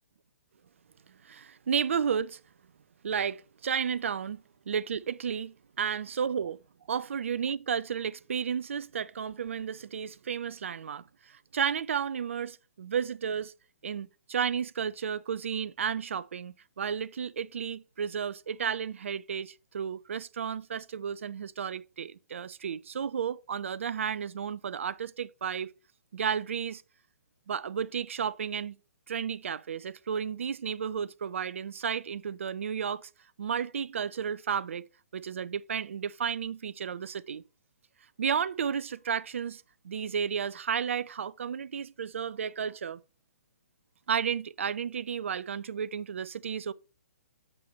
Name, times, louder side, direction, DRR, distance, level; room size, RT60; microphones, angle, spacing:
voice 1, 1.2-2.4 3.0-6.6 6.9-13.5 13.8-25.7 26.1-26.8 27.5-28.8 29.1-33.1 33.4-34.9 35.1-37.4 38.2-43.0 44.1-46.7, right 7 dB, 55° right, 0.4 m, -32 dB
6.5 x 6.0 x 3.2 m
figure-of-eight pair, 125°, 8 cm